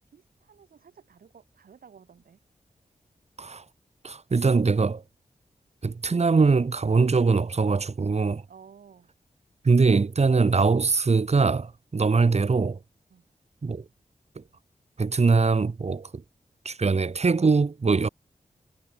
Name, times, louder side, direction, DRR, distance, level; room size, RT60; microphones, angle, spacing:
voice 1, 0.0-2.4 8.5-9.1 13.1-13.3, right 7 dB, 90° right, 7.2 m, -53 dB
voice 2, 4.0-5.0 5.8-8.4 9.6-12.8 13.6-13.8 14.4-14.5 15.0-16.2 16.6-18.1, right 4 dB, 50° right, 1.4 m, -22 dB
cardioid pair, 45°, 15 cm